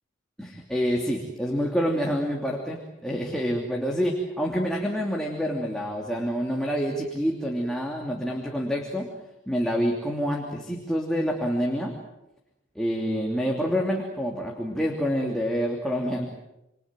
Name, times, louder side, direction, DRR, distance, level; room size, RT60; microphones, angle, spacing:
voice 1, 0.4-9.1 9.5-11.9 12.7-16.3, equal, 5° left, -1 dB, 3.0 m, -27 dB
28.5 x 25.5 x 7.7 m, 0.90 s
head